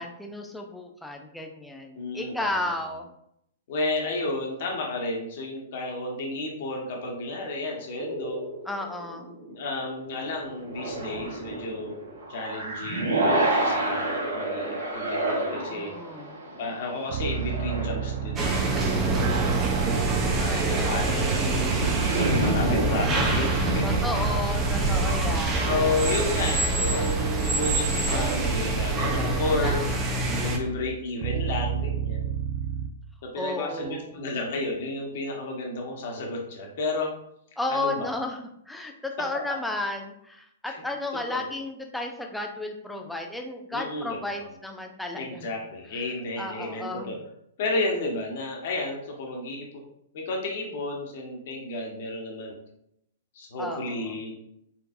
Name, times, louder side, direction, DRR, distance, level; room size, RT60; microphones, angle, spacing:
voice 1, 0.0-3.1 8.6-9.3 15.7-16.4 20.2-20.9 23.8-26.0 33.4-34.1 37.6-38.4 38.7-45.5 45.9-46.0 46.4-47.2 53.6-54.2, left 2 dB, 5° left, 2 dB, 0.6 m, -33 dB
voice 2, 2.0-2.6 3.7-8.4 9.5-12.0 12.3-15.9 16.6-19.7 20.3-21.8 22.3-23.8 24.1-24.2 25.6-29.8 30.4-32.3 33.2-37.1 37.7-38.1 40.7-40.8 41.3-41.4 43.7-44.5 45.1-47.2 47.6-49.8 50.1-52.5 53.3-54.5, left 2 dB, 60° left, 0 dB, 1.3 m, -32 dB
sound 1, 8.0-9.6 10.5-26.2, right 1 dB, 80° right, 1.5 m, -31 dB
sound 2, 17.1-32.9, right 8 dB, 45° right, 0.3 m, -32 dB
sound 3, 18.4-30.6, right 2 dB, 25° right, 0.8 m, -26 dB
4.4 x 3.9 x 2.6 m, 0.75 s
hypercardioid pair, 120°, 0 cm